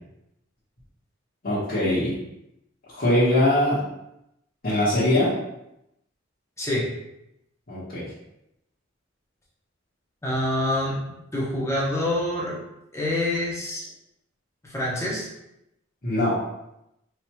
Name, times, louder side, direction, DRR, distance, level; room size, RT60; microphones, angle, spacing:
voice 1, 1.4-2.1 2.9-3.8 4.6-5.3 7.7-8.1 16.0-16.3, left 1 dB, 50° left, -12 dB, 1.3 m, -22 dB
voice 2, 6.6-6.9 10.2-12.6 12.9-13.8 14.6-15.3, left 1 dB, 15° left, -5 dB, 1.0 m, -26 dB
4.7 x 3.0 x 2.3 m, 0.84 s
head